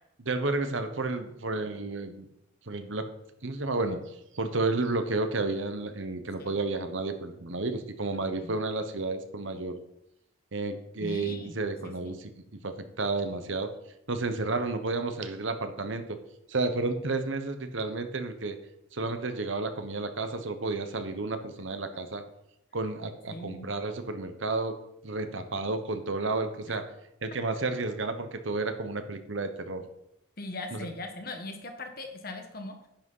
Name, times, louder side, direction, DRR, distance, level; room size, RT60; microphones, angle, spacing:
voice 1, 0.2-2.3 2.7-3.1 3.4-4.0 4.3-9.8 10.5-13.7 14.1-16.2 16.5-18.6 18.9-22.2 22.7-24.8 25.0-26.8 27.2-29.9 30.7-30.9, right 3 dB, 70° right, 8 dB, 1.0 m, -31 dB
voice 2, 11.0-11.6 11.8-12.1 23.3-23.7 26.7-26.8 30.4-32.7, left 2 dB, 45° left, 5 dB, 1.4 m, -40 dB
10.0 x 6.3 x 5.5 m, 0.81 s
head